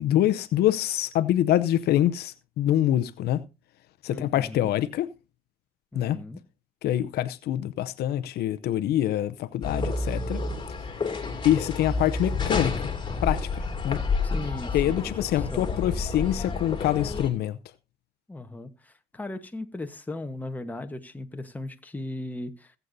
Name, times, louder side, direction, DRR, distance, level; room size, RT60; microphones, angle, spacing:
voice 1, 0.0-3.4 4.0-5.1 5.9-6.2 6.8-10.4 11.4-12.9 13.2-14.0 14.7-17.6, left 12 dB, 70° left, 0.7 m, -25 dB
voice 2, 4.1-4.7 5.9-6.4 14.2-15.7 18.3-22.7, left 2 dB, 10° left, 1.2 m, -37 dB
sound 1, 9.6-17.3, left 4 dB, 25° left, 2.5 m, -30 dB
20.5 x 8.1 x 2.7 m
cardioid pair, 110°, 17 cm